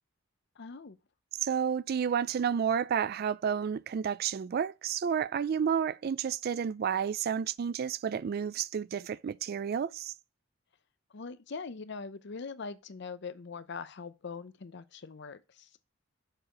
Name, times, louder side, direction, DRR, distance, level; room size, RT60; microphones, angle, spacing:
voice 1, 0.6-1.0 11.1-15.7, left 4 dB, 65° left, 0.6 m, -42 dB
voice 2, 1.4-10.1, right 7 dB, 50° right, 0.3 m, -31 dB
6.7 x 4.7 x 5.1 m
head